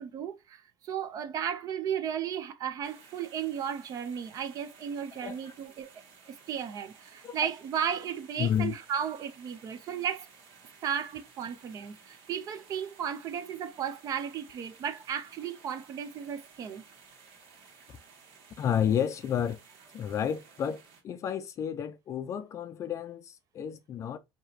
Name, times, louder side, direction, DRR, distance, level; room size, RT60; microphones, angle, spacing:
voice 1, 0.0-5.9 6.3-10.3 10.8-16.8, right 8 dB, 40° right, 0.6 m, -34 dB
sound 1, 2.8-21.0, right 5 dB, 70° right, 1.8 m, -56 dB
voice 2, 8.4-8.7 18.6-19.6 19.9-24.2, left 9 dB, 30° left, 0.4 m, -31 dB
4.6 x 2.9 x 2.8 m
cardioid pair, 165°, 10 cm